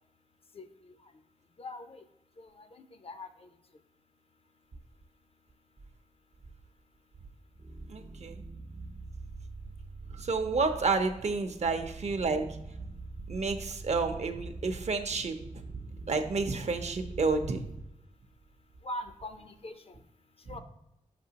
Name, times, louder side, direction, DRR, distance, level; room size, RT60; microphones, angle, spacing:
voice 1, 0.5-0.9 1.6-2.0 2.4-3.5 18.8-20.0 20.4-20.6, left 1 dB, 45° left, 8 dB, 0.5 m, -43 dB
sound 1, 7.5-17.8, right 3 dB, 75° right, 0.9 m, -45 dB
voice 2, 7.9-8.4 10.1-12.6 13.3-15.8 16.1-17.6 20.5-20.6, right 4 dB, 55° right, 7 dB, 0.6 m, -30 dB
5.9 x 5.8 x 2.8 m, 0.83 s
wide cardioid pair, 95°, 14 cm